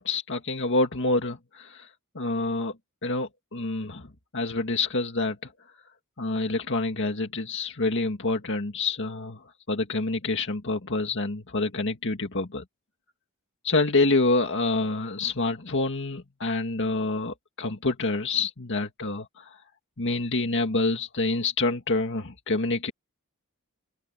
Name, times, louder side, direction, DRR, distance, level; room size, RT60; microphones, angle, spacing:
voice 1, 0.0-1.9 2.2-2.7 3.0-4.1 4.3-5.5 6.2-9.4 9.7-12.6 13.6-19.4 20.0-22.9, left 3 dB, 55° left, 2.0 m, -27 dB
open air
head